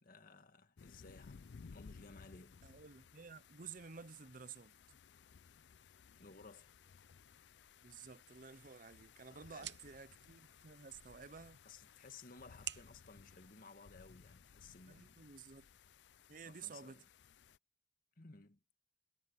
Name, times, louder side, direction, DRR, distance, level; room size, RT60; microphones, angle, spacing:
voice 1, 0.0-2.6 4.9-5.0 6.2-6.7 9.3-9.8 11.6-15.3 16.4-17.1 18.2-18.6, left 3 dB, 55° left, 1.8 m, -58 dB
sound 1, 0.8-17.6, left 5 dB, 85° left, 0.5 m, -60 dB
voice 2, 2.6-4.8 7.8-11.6 14.9-15.7 16.3-17.0, right 5 dB, 50° right, 0.8 m, -53 dB
sound 2, 8.3-14.4, right 12 dB, 80° right, 1.1 m, -54 dB
head